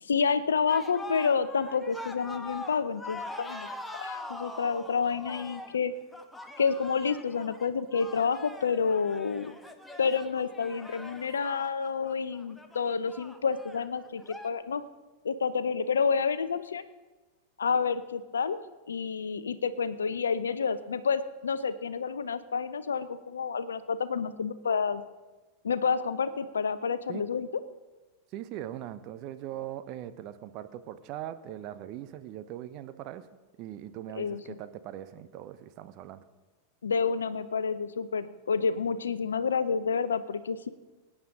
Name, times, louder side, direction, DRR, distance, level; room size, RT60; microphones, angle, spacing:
voice 1, 0.0-3.7 4.0-5.9 6.6-9.6 10.0-14.8 15.2-16.8 17.6-18.6 18.9-25.0 25.6-27.5 34.1-34.4 36.8-40.7, left 5 dB, 70° left, 14 dB, 0.7 m, -29 dB
sound 1, 0.7-14.5, left 2 dB, 5° left, 1.1 m, -43 dB
voice 2, 28.3-33.3 33.6-36.2, right 12 dB, 40° right, 11 dB, 0.9 m, -40 dB
23.0 x 9.8 x 3.8 m, 1.2 s
figure-of-eight pair, 90°, 0 cm